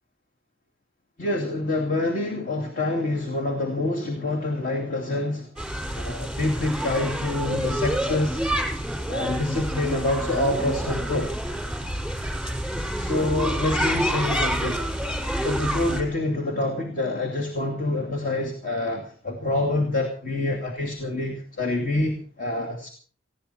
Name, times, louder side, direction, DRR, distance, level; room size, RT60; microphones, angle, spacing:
voice 1, 1.2-5.5 6.0-8.4 9.1-11.3 13.0-14.8 15.4-22.9, left 2 dB, 45° left, 1 dB, 2.7 m, -26 dB
sound 1, 5.6-16.0, equal, ahead, 5.3 m, -28 dB
19.5 x 16.5 x 4.5 m, 0.43 s
head